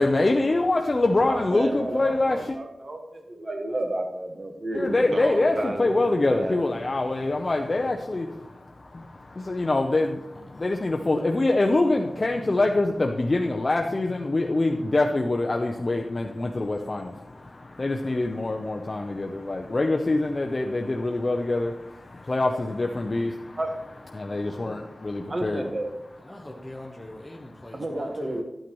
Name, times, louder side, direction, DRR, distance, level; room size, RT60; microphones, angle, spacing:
voice 1, 0.0-2.6 4.7-23.6 24.1-25.6, left 2 dB, 35° left, 2 dB, 0.6 m, -25 dB
voice 2, 1.3-6.8 23.6-23.7 25.3-25.9 27.7-28.4, right 1 dB, 45° right, 3 dB, 1.3 m, -31 dB
voice 3, 26.2-28.4, left 1 dB, 10° left, -2 dB, 1.0 m, -42 dB
11.5 x 9.0 x 3.0 m, 0.90 s
wide cardioid pair, 105°, 0 cm